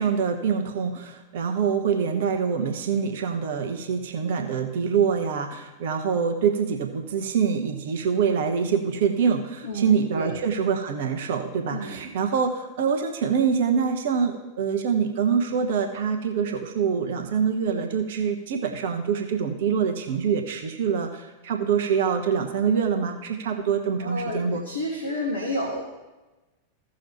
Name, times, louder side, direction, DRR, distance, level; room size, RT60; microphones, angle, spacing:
voice 1, 0.0-24.6, right 6 dB, 55° right, 5 dB, 0.9 m, -25 dB
voice 2, 9.6-10.4 11.7-12.0 24.0-25.8, left 1 dB, 75° left, -2 dB, 1.7 m, -30 dB
16.0 x 6.2 x 3.0 m, 1.1 s
figure-of-eight pair, 90°, 0 cm